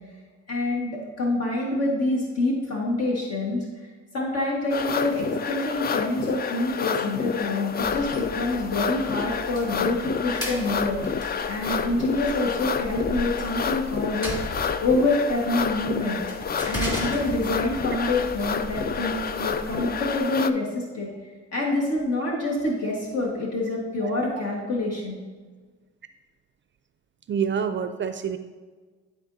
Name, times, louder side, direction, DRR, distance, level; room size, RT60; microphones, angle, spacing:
voice 1, 0.5-3.7 4.1-11.0 11.5-19.1 19.4-21.1 21.5-25.2, left 2 dB, 55° left, -3 dB, 1.6 m, -26 dB
sound 1, 4.7-20.5, left 6 dB, 35° left, 0.4 m, -29 dB
sound 2, 7.8-20.2, equal, 15° left, 2.3 m, -37 dB
voice 2, 27.3-28.4, right 7 dB, 40° right, 9 dB, 0.4 m, -27 dB
12.0 x 4.4 x 2.7 m, 1.4 s
cardioid pair, 90°, 30 cm